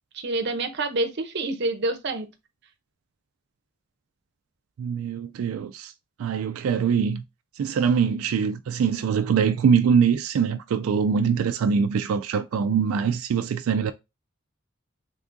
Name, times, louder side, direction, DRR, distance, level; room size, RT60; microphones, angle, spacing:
voice 1, 0.1-2.3, right 2 dB, 55° right, 0.7 m, -27 dB
voice 2, 4.8-5.9 6.2-7.2 7.6-13.9, right 6 dB, 90° right, 0.3 m, -23 dB
3.6 x 3.5 x 2.5 m
head